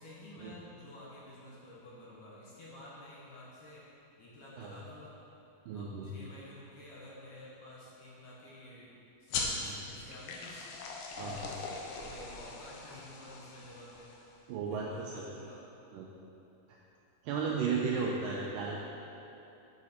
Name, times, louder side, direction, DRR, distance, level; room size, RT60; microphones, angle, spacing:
voice 1, 0.0-3.9 4.2-5.2 5.7-8.9 9.2-10.7 11.2-14.1 14.7-15.6, left 1 dB, 65° left, -6 dB, 2.4 m, -51 dB
voice 2, 5.7-6.1 9.6-9.8 11.2-11.5 14.5-15.2 15.9-16.1 17.2-18.8, right 5 dB, 85° right, -2 dB, 1.9 m, -34 dB
sound 1, 9.3-14.4, left 4 dB, 90° left, 2.7 m, -41 dB
8.4 x 4.9 x 4.2 m, 2.9 s
omnidirectional pair, 4.4 m